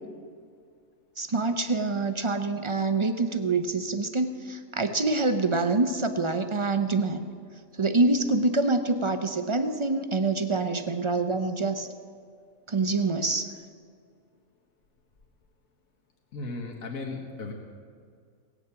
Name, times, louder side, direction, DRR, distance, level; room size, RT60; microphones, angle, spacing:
voice 1, 1.2-7.2 7.8-11.9 12.7-13.5, right 3 dB, 45° right, 8 dB, 0.4 m, -26 dB
voice 2, 16.3-17.5, left 3 dB, 80° left, 1 dB, 1.6 m, -36 dB
18.0 x 7.1 x 8.3 m, 2.1 s
omnidirectional pair, 1.4 m